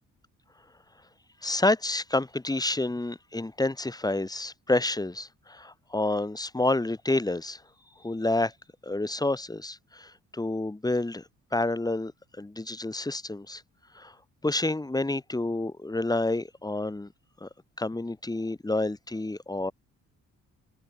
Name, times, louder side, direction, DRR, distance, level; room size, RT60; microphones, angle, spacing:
voice 1, 1.4-7.6 8.0-8.5 8.8-11.2 11.5-12.1 12.4-13.6 13.9-14.1 14.4-17.1 17.4-17.5 17.8-19.7, left 2 dB, 10° left, 3.0 m, -29 dB
open air
cardioid pair, 90°, 30 cm